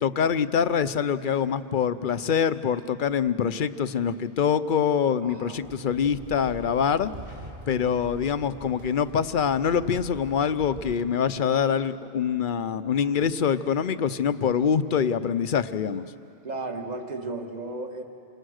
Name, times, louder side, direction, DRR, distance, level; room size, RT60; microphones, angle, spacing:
voice 1, 0.0-7.1 7.7-16.1, left 7 dB, 55° left, 13 dB, 0.8 m, -25 dB
voice 2, 5.2-5.6 16.4-18.0, right 2 dB, 40° right, 4 dB, 1.7 m, -34 dB
sound 1, 5.6-11.0, equal, 60° right, 5.5 m, -44 dB
28.0 x 25.5 x 6.5 m, 2.6 s
omnidirectional pair, 1.1 m